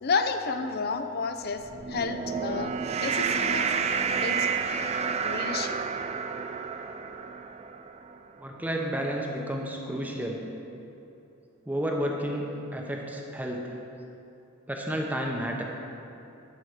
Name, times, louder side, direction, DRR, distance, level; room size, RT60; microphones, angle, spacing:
voice 1, 0.0-3.7 4.1-4.5 5.2-5.8, left 4 dB, 50° left, 8 dB, 0.6 m, -31 dB
sound 1, 1.6-8.2, right 6 dB, 30° right, 0.4 m, -30 dB
voice 2, 8.4-10.4 11.7-13.8 14.7-15.6, equal, 10° right, 0 dB, 0.8 m, -31 dB
11.5 x 4.9 x 6.5 m, 2.7 s
head